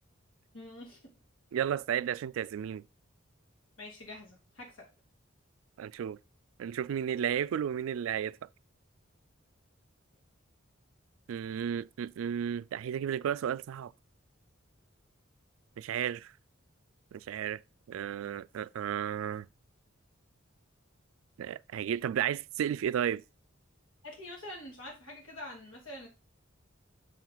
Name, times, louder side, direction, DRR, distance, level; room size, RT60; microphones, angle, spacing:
voice 1, 0.5-1.1 3.8-4.9 24.0-26.1, left 1 dB, 85° left, 3.5 m, -45 dB
voice 2, 1.5-2.8 5.8-6.2 6.6-8.4 11.3-13.9 15.8-16.3 17.1-17.6 17.9-19.5 21.4-23.2, right 9 dB, 80° right, 0.3 m, -33 dB
7.3 x 4.6 x 3.8 m
head